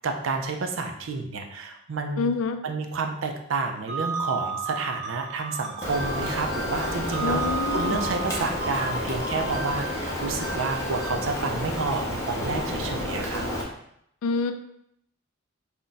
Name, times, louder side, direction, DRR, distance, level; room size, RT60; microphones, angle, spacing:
voice 1, 0.0-2.3 2.6-7.4 7.7-13.5, right 4 dB, 75° right, 4 dB, 0.4 m, -30 dB
voice 2, 2.2-2.6 7.2-8.0 14.2-14.5, left 4 dB, 90° left, 8 dB, 0.3 m, -27 dB
sound 1, 3.9-11.2, right 3 dB, 55° right, 0.8 m, -34 dB
Rain, 5.8-13.6, left 1 dB, 15° left, 0.6 m, -30 dB
2.5 x 2.2 x 3.9 m, 0.73 s
head